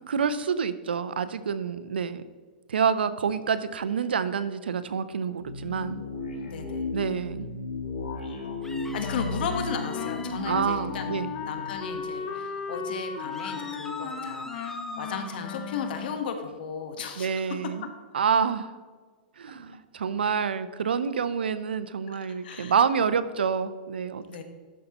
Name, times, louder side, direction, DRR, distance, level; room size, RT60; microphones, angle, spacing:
voice 1, 0.1-2.2 2.7-6.0 6.9-7.5 10.5-11.3 17.2-17.9 18.1-18.7 19.4-24.2, right 6 dB, 90° right, 14 dB, 0.5 m, -27 dB
sound 1, 5.4-12.6, left 3 dB, 85° left, 1.9 m, -35 dB
voice 2, 6.4-6.9 8.2-8.6 8.9-11.2 11.5-17.6 22.1-22.8 24.3-24.4, left 5 dB, 70° left, 6 dB, 1.2 m, -35 dB
sound 2, 8.6-10.4 13.3-15.4, left 2 dB, 5° left, 0.7 m, -41 dB
Wind instrument woodwind instrument, 9.0-16.3, left 6 dB, 45° left, 0.9 m, -36 dB
12.5 x 5.4 x 2.9 m, 1.5 s
hypercardioid pair, 125°, 5 cm